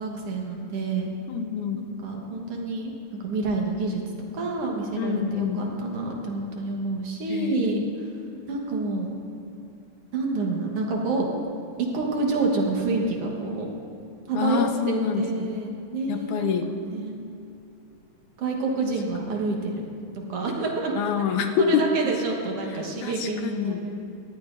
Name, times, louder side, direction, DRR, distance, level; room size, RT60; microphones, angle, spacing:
voice 1, 0.0-1.1 1.8-2.9 3.2-4.0 4.3-8.1 8.5-9.1 10.1-11.3 11.8-13.7 14.3-16.5 16.9-17.2 18.4-19.8 20.1-21.0 21.6-23.9, right 3 dB, 55° right, 0 dB, 2.1 m, -28 dB
voice 2, 1.3-1.8 5.0-5.6 7.3-7.8 14.4-15.5 16.1-16.7 21.0-21.9 23.0-23.8, left 7 dB, 85° left, 5 dB, 2.2 m, -26 dB
18.5 x 13.5 x 2.6 m, 2.6 s
omnidirectional pair, 3.4 m